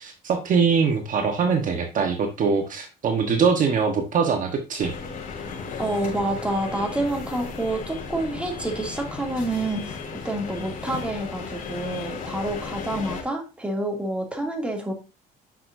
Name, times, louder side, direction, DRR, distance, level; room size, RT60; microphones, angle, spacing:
voice 1, 0.0-4.9, right 5 dB, 50° right, 4 dB, 1.3 m, -22 dB
sound 1, 4.8-13.2, left 5 dB, 50° left, 3.4 m, -35 dB
voice 2, 5.8-10.0 10.2-14.9, right 1 dB, 5° right, 1 dB, 2.5 m, -28 dB
9.9 x 6.3 x 2.7 m, 0.28 s
cardioid pair, 110°, 17 cm